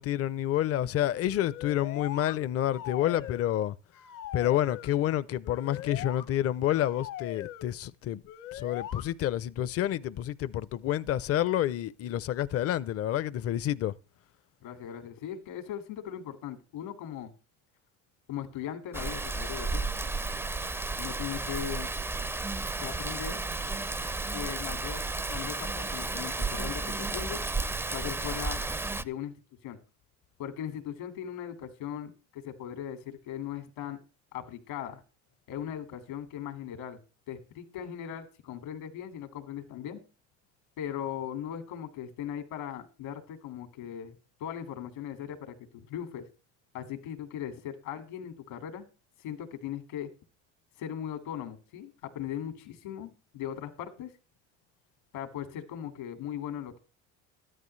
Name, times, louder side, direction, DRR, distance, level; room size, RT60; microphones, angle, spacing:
voice 1, 0.0-3.7 4.3-8.2 8.6-13.9, left 12 dB, 40° left, 0.5 m, -29 dB
sound 1, 1.3-2.4 2.7-3.6 3.9-5.0 5.4-6.2 6.7-7.7 8.3-9.0, left 12 dB, 60° left, 1.0 m, -41 dB
voice 2, 14.6-17.3 18.3-19.8 21.0-21.9 22.8-23.5 24.3-27.4 27.9-28.6 29.0-29.4 29.6-29.8 30.4-34.0 34.3-35.0 35.5-37.0 37.3-40.0 40.8-44.2 44.4-46.3 46.7-48.9 49.2-50.1 50.8-54.1 55.1-56.8, left 10 dB, 80° left, 2.2 m, -39 dB
Rain, 18.9-29.0, right 3 dB, 5° right, 0.4 m, -33 dB
13.5 x 11.0 x 3.2 m
supercardioid pair, 105°, 36 cm